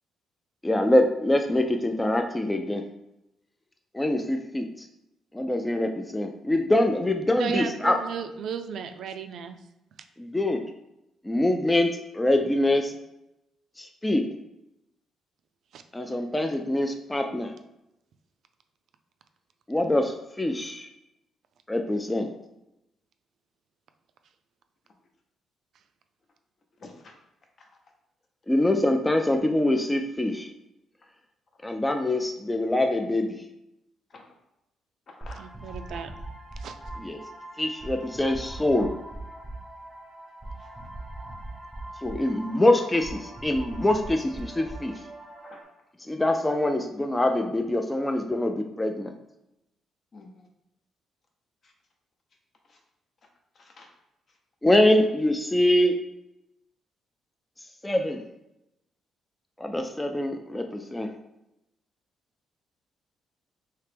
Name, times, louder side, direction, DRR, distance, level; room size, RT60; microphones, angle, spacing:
voice 1, 0.6-2.8 3.9-4.7 5.3-8.0 10.2-10.6 11.2-12.9 13.8-14.3 15.9-17.5 19.7-20.9 21.7-22.3 28.5-30.5 31.6-33.4 37.0-37.2 37.6-38.9 42.0-44.9 46.1-49.1 54.6-55.9 57.8-58.2 59.6-61.1, left 1 dB, 10° left, 0.3 m, -24 dB
voice 2, 7.4-9.6 15.7-15.8 35.4-36.1 36.6-36.8, right 6 dB, 70° right, 0.3 m, -34 dB
voice 3, 26.8-27.1 34.1-34.3 35.1-35.4 35.9-36.0 45.4-45.6 50.1-50.4 53.6-53.9, left 3 dB, 50° left, 0.7 m, -47 dB
sound 1, 35.2-45.6, right 2 dB, 5° right, 0.7 m, -41 dB
3.2 x 2.8 x 3.3 m
cardioid pair, 90°, 0 cm